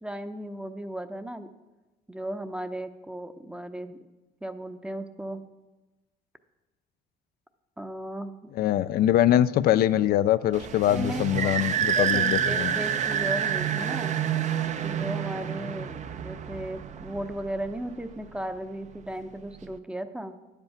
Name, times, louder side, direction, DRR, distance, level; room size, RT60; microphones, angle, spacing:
voice 1, 0.0-1.5 2.1-4.0 4.4-5.4 7.8-8.5 10.9-14.1 14.8-20.4, right 1 dB, 5° right, 10 dB, 0.7 m, -36 dB
voice 2, 8.5-12.7, left 12 dB, 65° left, 13 dB, 0.4 m, -23 dB
sound 1, 10.5-17.9, right 8 dB, 45° right, 0.6 m, -28 dB
10.5 x 8.1 x 5.7 m, 1.1 s
cardioid pair, 110°, 17 cm